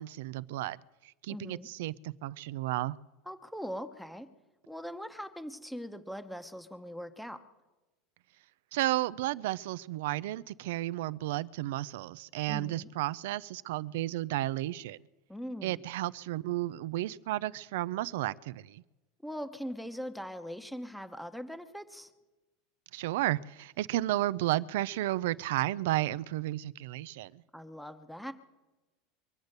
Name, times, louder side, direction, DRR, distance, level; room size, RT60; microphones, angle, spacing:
voice 1, 0.0-3.0 8.7-15.0 15.6-18.8 22.9-27.4, right 16 dB, 80° right, 0.4 m, -33 dB
voice 2, 1.3-1.7 3.3-4.3 4.7-7.4 12.5-12.9 15.3-15.8 19.2-22.1 27.5-28.3, equal, ahead, 0.9 m, -41 dB
23.5 x 8.1 x 6.6 m
supercardioid pair, 125°, 0 cm